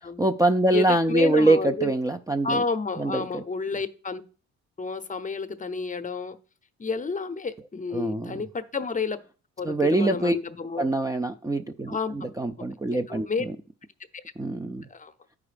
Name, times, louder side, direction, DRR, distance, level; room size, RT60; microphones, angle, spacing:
voice 1, 0.0-2.6 3.0-3.4 7.9-8.4 9.6-10.4 10.8-13.6 14.4-14.9, right 2 dB, 10° right, 0.4 m, -24 dB
voice 2, 0.7-1.9 2.4-4.2 4.8-6.4 6.8-9.2 9.6-10.9 11.9-12.2 13.1-13.4 14.1-14.2 14.9-15.1, left 4 dB, 25° left, 0.7 m, -30 dB
9.5 x 4.8 x 5.0 m
cardioid pair, 90°, 30 cm